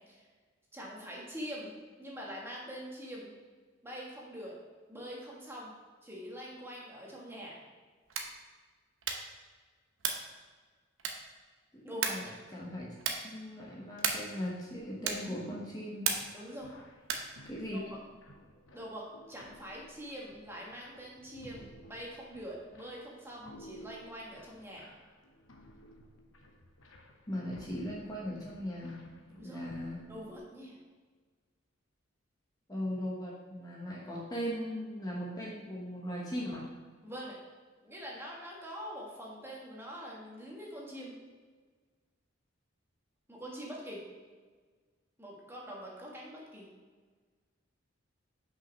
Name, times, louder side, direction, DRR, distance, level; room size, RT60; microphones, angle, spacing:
voice 1, 0.7-1.7 2.0-3.3 3.8-4.6 4.9-5.7 6.0-7.6 11.8-12.3 16.3-16.8 17.7-17.8 18.7-24.9 29.3-29.6 30.1-30.8 37.0-37.4 37.8-41.1 43.3-44.0 45.2-46.7, equal, 10° right, -4 dB, 1.5 m, -44 dB
sound 1, 8.0-8.4 9.0-9.4 10.0-10.3 11.0-11.4 12.0-12.3 13.0-13.3 14.0-14.4 15.0-15.4 16.0-16.4 17.0-17.4, right 6 dB, 70° right, 0.9 m, -34 dB
voice 2, 11.7-12.3 12.5-13.0 13.2-16.1 17.4-17.8 27.3-29.0 29.4-30.0 32.7-36.6, equal, 20° left, -5 dB, 1.1 m, -38 dB
sound 2, 16.6-30.4, equal, 75° left, 0.9 m, -56 dB
6.0 x 5.6 x 5.2 m, 1.5 s
head